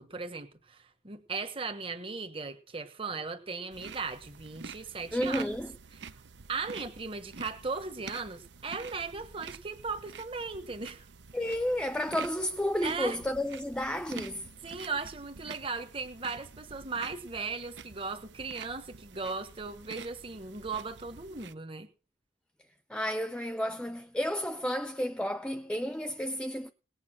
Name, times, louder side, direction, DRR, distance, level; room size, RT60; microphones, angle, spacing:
voice 1, 0.0-5.5 6.5-11.1 12.8-13.2 14.6-21.9, right 4 dB, 30° right, 1.3 m, -37 dB
sound 1, 3.7-21.6, right 5 dB, 75° right, 0.8 m, -48 dB
voice 2, 5.1-5.7 11.3-14.5 22.9-26.7, equal, 5° left, 0.6 m, -31 dB
18.5 x 8.5 x 6.1 m
head